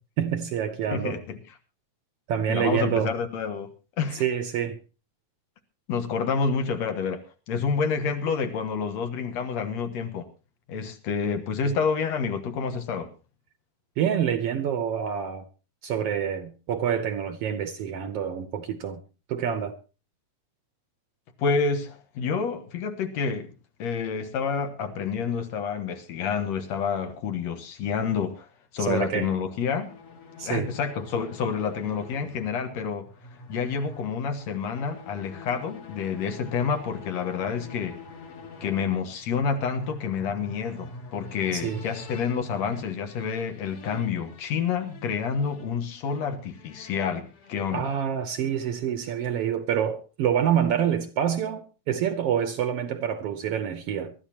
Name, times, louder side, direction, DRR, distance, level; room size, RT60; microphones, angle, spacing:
voice 1, 0.2-1.2 2.3-3.1 4.1-4.8 14.0-15.4 15.8-19.0 19.3-19.7 28.8-29.3 30.4-30.7 41.5-41.8 47.7-54.1, right 8 dB, 65° right, 1.6 m, -27 dB
voice 2, 0.9-1.4 2.5-3.7 4.0-4.2 5.9-10.3 10.7-13.1 21.4-23.5 23.8-28.5 28.7-29.9 30.4-33.1 33.5-38.0 38.6-47.9, left 6 dB, 70° left, 2.4 m, -28 dB
sound 1, 29.3-48.3, left 2 dB, 55° left, 2.7 m, -46 dB
23.5 x 12.5 x 2.9 m
omnidirectional pair, 3.4 m